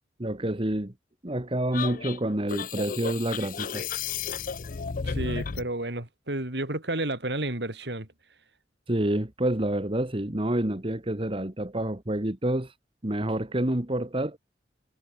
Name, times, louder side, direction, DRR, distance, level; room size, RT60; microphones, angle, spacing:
voice 1, 0.2-0.9 1.2-3.9 8.9-12.7 13.0-14.4, right 1 dB, 30° right, 1.8 m, -28 dB
sound 1, 1.7-5.7, left 6 dB, 50° left, 0.6 m, -33 dB
voice 2, 5.0-8.1, right 1 dB, 70° right, 3.7 m, -31 dB
head